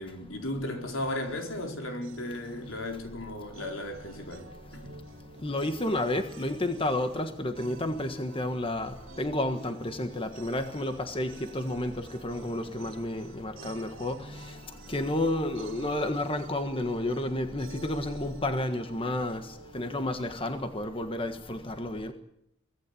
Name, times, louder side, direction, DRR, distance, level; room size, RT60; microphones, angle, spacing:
voice 1, 0.0-5.0, left 1 dB, 75° left, 4.6 m, -36 dB
sound 1, 1.0-20.1, right 1 dB, 75° right, 2.6 m, -49 dB
voice 2, 5.4-8.9 9.2-11.9 12.2-14.2 14.9-19.4 19.7-22.1, left 1 dB, 25° left, 1.5 m, -31 dB
24.5 x 18.0 x 8.5 m
head